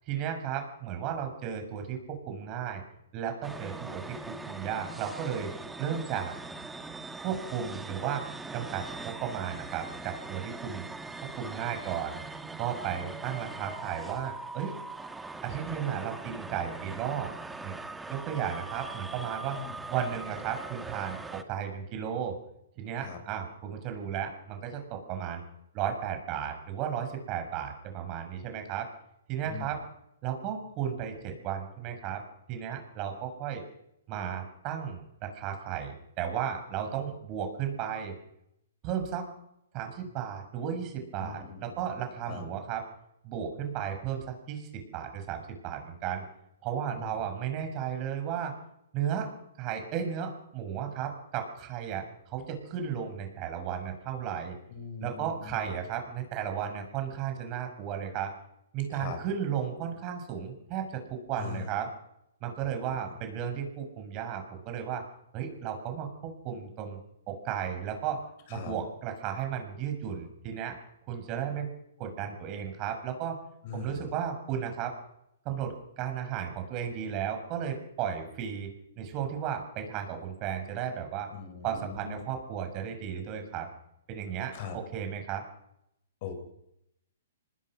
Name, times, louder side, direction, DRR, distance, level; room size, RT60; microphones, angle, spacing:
voice 1, 0.1-2.8 3.1-5.5 5.8-6.3 7.2-8.2 8.5-10.8 11.4-12.2 12.6-14.7 15.4-17.3 17.6-17.7 18.1-19.6 19.9-22.3 22.8-25.4 25.7-28.9 29.3-29.8 30.2-32.2 32.5-33.6 34.1-38.1 38.8-39.2 39.7-42.8 43.2-46.2 46.6-48.5 48.9-49.3 49.6-54.5 55.0-58.3 58.7-61.9 62.4-65.0 65.3-67.0 67.3-68.2 68.5-70.7 71.1-71.7 72.0-73.4 73.7-74.9 75.4-78.7 79.0-81.3 81.6-83.7 84.1-85.4, right 8 dB, 35° right, 5 dB, 6.8 m, -34 dB
sound 1, 3.4-21.4, right 3 dB, 5° right, 1.8 m, -41 dB
voice 2, 29.4-29.8 41.2-41.8 42.3-42.5 47.0-47.2 54.7-55.7 58.9-59.2 61.4-61.7 62.6-63.2 68.5-68.7 73.6-74.1 81.3-82.2 84.5-84.8 86.2-86.3, left 7 dB, 45° left, 6 dB, 7.0 m, -41 dB
25.5 x 20.5 x 6.3 m, 0.80 s
hypercardioid pair, 135°, 0 cm